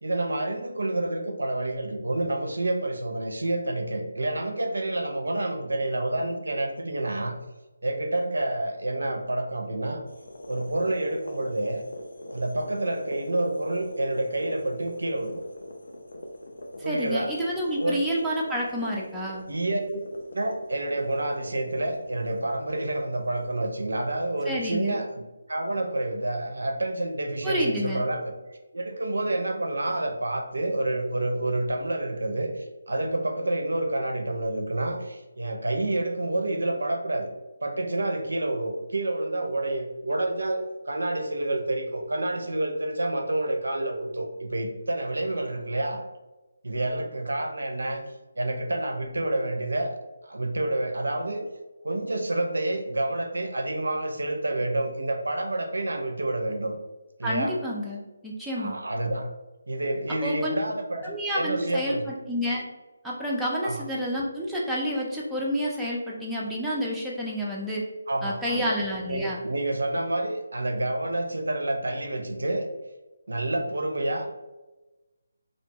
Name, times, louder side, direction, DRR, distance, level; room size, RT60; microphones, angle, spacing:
voice 1, 0.0-7.4 7.8-10.0 10.5-11.8 12.3-15.4 16.8-18.0 19.5-20.0 20.3-28.3 28.7-37.3 37.6-46.0 46.6-48.0 48.4-49.9 50.2-51.5 51.8-56.7 57.2-57.5 58.6-59.3 59.7-62.1 63.6-63.8 68.1-68.7 69.1-72.7 73.3-74.4, right 1 dB, 85° right, 4 dB, 0.4 m, -28 dB
sound 1, 10.1-24.3, left 1 dB, 75° left, 0.4 m, -43 dB
voice 2, 16.9-19.4 24.5-25.0 27.4-28.0 57.2-58.8 60.2-60.6 61.0-62.7 63.0-67.8 68.2-69.4, equal, ahead, -7 dB, 0.4 m, -29 dB
2.6 x 2.1 x 2.7 m, 1.1 s
figure-of-eight pair, 160°, 0 cm